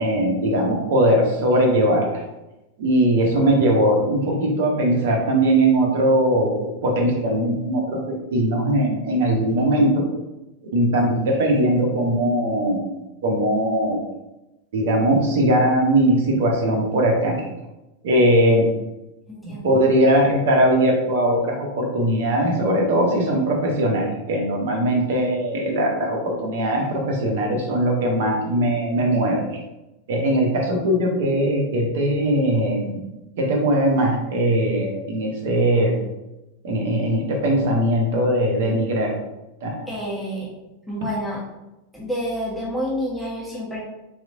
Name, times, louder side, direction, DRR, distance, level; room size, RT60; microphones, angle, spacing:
voice 1, 0.0-2.2 2.8-10.0 10.7-12.9 13.2-14.0 14.7-17.4 18.0-18.7 19.4-29.4 30.1-32.9 33.4-35.9 36.6-39.2 39.6-39.8, right 1 dB, 55° right, 0 dB, 0.9 m, -20 dB
voice 2, 19.3-19.8 39.9-40.5 40.9-41.4 41.9-43.8, equal, 5° left, -6 dB, 1.2 m, -28 dB
4.1 x 3.0 x 2.5 m, 0.99 s
figure-of-eight pair, 90°, 0 cm